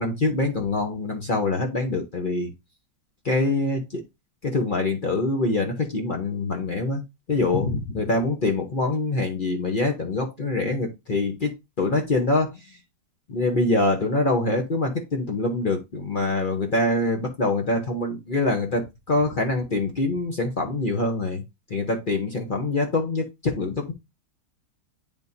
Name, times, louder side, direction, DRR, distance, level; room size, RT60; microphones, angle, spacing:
voice 1, 0.0-2.5 3.2-4.0 4.4-7.0 7.3-12.6 13.3-21.4 21.7-23.9, left 2 dB, 45° left, 0.6 m, -24 dB
9.7 x 3.6 x 2.7 m
omnidirectional pair, 2.2 m